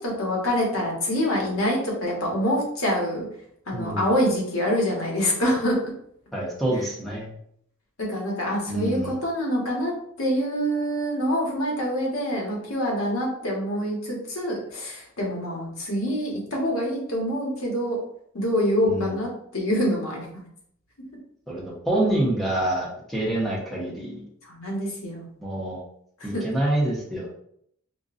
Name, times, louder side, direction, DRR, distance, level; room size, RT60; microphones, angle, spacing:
voice 1, 0.0-3.3 3.7-5.9 8.0-9.9 10.2-18.0 18.3-20.3 24.5-25.3 26.2-26.6, equal, 85° left, -2 dB, 1.2 m, -26 dB
voice 2, 3.7-4.2 6.3-7.3 8.7-9.2 18.8-19.2 21.5-24.2 25.4-25.8 26.2-27.4, right 1 dB, ahead, -5 dB, 0.8 m, -27 dB
5.1 x 2.3 x 2.5 m, 0.69 s
head